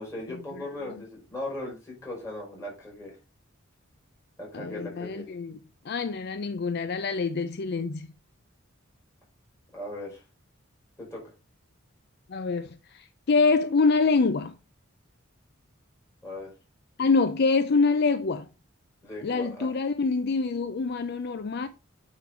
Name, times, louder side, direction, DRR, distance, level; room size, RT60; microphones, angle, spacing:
voice 1, 0.0-3.1 4.4-5.3 9.7-10.2 11.0-11.2 16.2-16.5 19.0-19.7, left 1 dB, 15° left, 4.9 m, -38 dB
voice 2, 4.5-5.6 5.8-8.1 12.3-14.5 17.0-18.5 19.2-21.7, left 4 dB, 55° left, 0.5 m, -25 dB
8.8 x 3.9 x 4.9 m
head